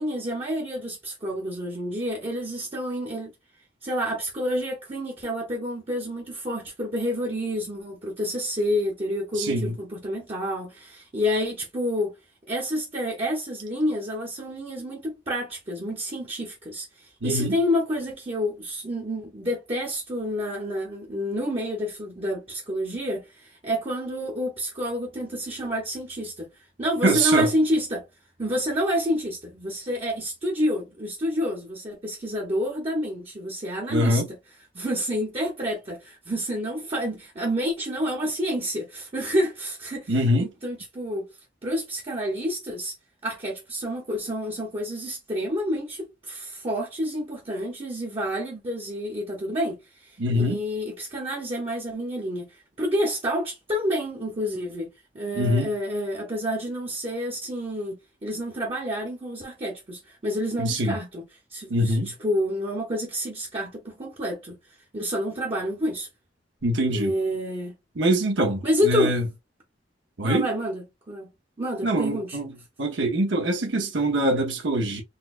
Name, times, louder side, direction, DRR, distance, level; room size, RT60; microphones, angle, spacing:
voice 1, 0.0-3.3 3.8-12.1 12.5-26.5 26.8-28.0 28.4-41.3 41.6-42.9 43.2-61.2 61.5-64.6 64.9-66.1 66.9-67.7 68.6-69.2 70.2-71.3 71.6-72.4, equal, 30° right, 0.8 m, -29 dB
voice 2, 9.4-9.7 17.2-17.6 27.0-27.5 33.9-34.2 40.1-40.5 50.2-50.6 55.3-55.7 60.6-61.0 61.7-62.1 66.6-67.1 68.0-69.2 70.2-70.5 71.8-72.5 72.8-75.0, right 1 dB, 85° right, 0.8 m, -23 dB
4.0 x 2.2 x 2.5 m
head